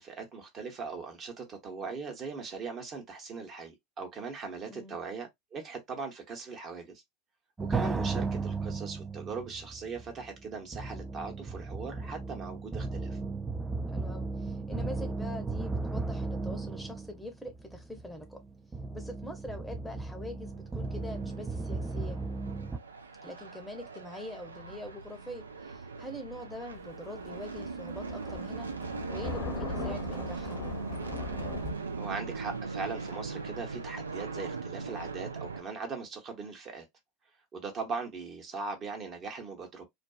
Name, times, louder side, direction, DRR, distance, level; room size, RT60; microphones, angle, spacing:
voice 1, 0.0-6.9 7.7-13.2 31.9-36.9 37.5-39.8, right 4 dB, 35° right, 0.9 m, -40 dB
voice 2, 4.7-5.0 13.9-18.4 18.9-22.2 23.2-28.7 29.1-30.6, left 1 dB, 5° left, 0.7 m, -44 dB
sound 1, 7.6-22.8, right 3 dB, 15° right, 0.3 m, -35 dB
sound 2, 20.8-35.6, right 4 dB, 90° right, 0.4 m, -40 dB
Thunder, 26.8-31.7, left 5 dB, 40° left, 0.8 m, -40 dB
2.5 x 2.2 x 2.3 m
hypercardioid pair, 85°, 0 cm